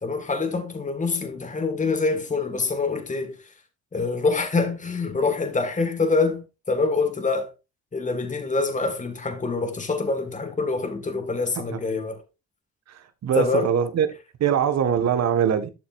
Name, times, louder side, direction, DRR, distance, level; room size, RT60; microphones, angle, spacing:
voice 1, 0.0-3.5 3.9-7.5 7.9-12.2 13.4-13.7, left 3 dB, 25° left, 1.9 m, -25 dB
voice 2, 12.9-14.1 14.4-15.7, right 8 dB, 60° right, 1.7 m, -23 dB
12.0 x 7.0 x 2.6 m
cardioid pair, 90°, 30 cm